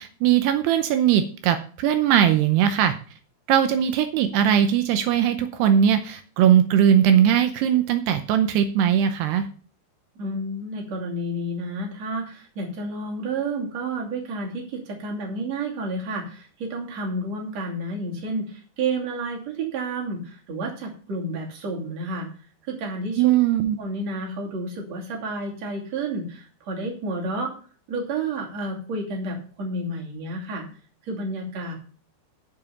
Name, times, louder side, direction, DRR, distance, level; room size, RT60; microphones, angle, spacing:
voice 1, 0.0-2.9 3.5-9.5 23.2-23.8, right 9 dB, 80° right, 8 dB, 2.5 m, -20 dB
voice 2, 10.2-22.3 22.7-23.4 23.8-27.5 27.9-30.7 31.0-31.7, right 2 dB, 40° right, -1 dB, 3.3 m, -30 dB
8.2 x 7.1 x 6.9 m, 0.41 s
omnidirectional pair, 5.4 m